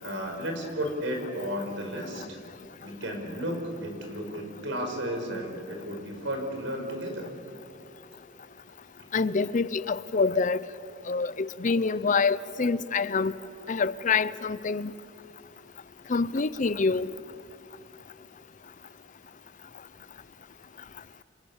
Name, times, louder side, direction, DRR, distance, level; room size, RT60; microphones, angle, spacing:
voice 1, 0.0-2.4 2.8-7.3, equal, 75° right, 5.5 m, -33 dB
voice 2, 9.1-10.6 11.1-13.3 13.7-14.9 16.1-17.1, left 4 dB, 40° left, 0.6 m, -26 dB
29.5 x 26.0 x 7.2 m
head